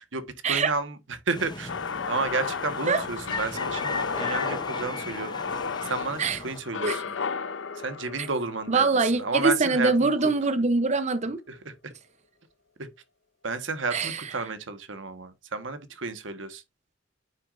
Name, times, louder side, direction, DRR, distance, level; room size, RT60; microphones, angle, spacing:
voice 1, 0.0-1.7 2.1-5.3 5.8-7.2 7.7-10.3 11.5-11.7 12.8-12.9 13.4-16.6, right 3 dB, 85° right, 1.4 m, -32 dB
sound 1, 1.3-6.6, left 3 dB, 25° left, 0.8 m, -37 dB
sound 2, 1.7-9.8, left 5 dB, 80° left, 0.7 m, -33 dB
voice 2, 8.7-11.4 13.9-14.2, right 3 dB, 35° right, 0.7 m, -23 dB
9.1 x 6.2 x 2.5 m
head